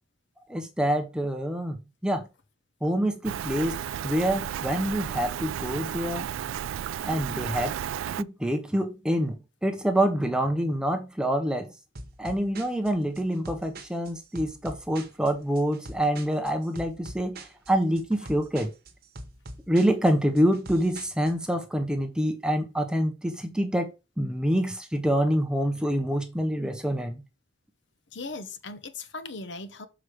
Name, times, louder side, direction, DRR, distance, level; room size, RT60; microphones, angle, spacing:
voice 1, 0.5-2.3 2.8-3.8 4.0-6.3 7.0-7.7 8.2-11.7 12.2-18.7 19.7-23.9 24.2-27.2, equal, 5° right, 0.7 m, -26 dB
Rain, 3.2-8.2, right 9 dB, 75° right, 0.3 m, -33 dB
sound 1, 12.0-21.5, right 1 dB, 50° right, 1.1 m, -44 dB
voice 2, 28.1-29.9, left 3 dB, 60° left, 0.9 m, -38 dB
6.2 x 4.8 x 4.9 m
head